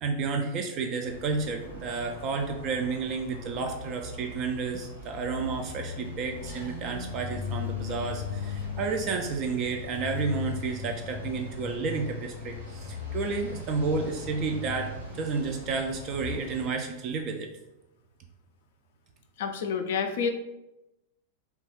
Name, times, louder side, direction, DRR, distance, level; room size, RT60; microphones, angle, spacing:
voice 1, 0.0-17.5, right 4 dB, 35° right, 3 dB, 0.3 m, -31 dB
sound 1, 1.1-16.7, left 4 dB, 75° right, 1.1 m, -38 dB
voice 2, 19.4-20.3, left 6 dB, 55° left, 5 dB, 0.4 m, -28 dB
2.9 x 2.2 x 2.9 m, 0.94 s
figure-of-eight pair, 90°, 0 cm